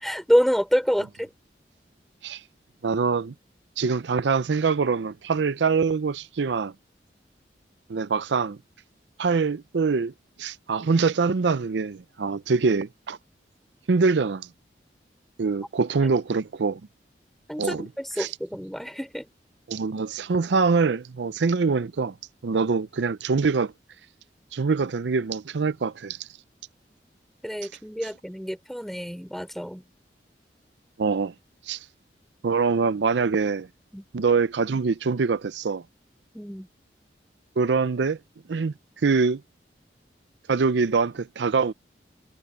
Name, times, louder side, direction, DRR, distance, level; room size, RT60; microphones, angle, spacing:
voice 1, 0.0-1.3 17.5-19.3 27.4-29.8 33.9-34.0 36.3-36.7, equal, ahead, 3.1 m, -27 dB
voice 2, 2.8-3.3 3.8-6.7 7.9-8.6 9.2-10.1 10.4-13.2 13.9-14.5 15.4-16.8 17.6-17.9 18.2-18.3 19.7-22.1 22.4-23.7 24.5-26.3 28.0-28.1 31.0-31.3 31.7-31.8 32.4-33.7 34.1-35.8 37.6-38.2 38.5-38.7 39.0-39.4 40.5-41.7, right 4 dB, 90° right, 0.5 m, -24 dB
head